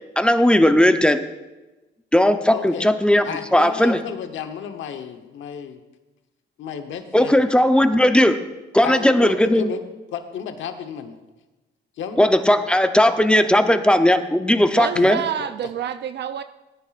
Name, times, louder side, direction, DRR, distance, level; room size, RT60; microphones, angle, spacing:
voice 1, 0.2-1.2 2.1-3.2 3.5-4.0 7.1-8.4 8.7-9.7 12.2-15.2, left 1 dB, 5° left, 8 dB, 0.7 m, -17 dB
voice 2, 2.5-2.9 3.2-5.8 6.6-7.4 8.8-9.8 10.1-11.1 12.0-12.3 14.9-15.1 15.4-15.5, left 7 dB, 75° left, 7 dB, 1.1 m, -32 dB
voice 3, 14.7-16.4, right 9 dB, 60° right, 10 dB, 0.5 m, -27 dB
18.0 x 10.0 x 2.5 m, 1.1 s
cardioid pair, 90°, 20 cm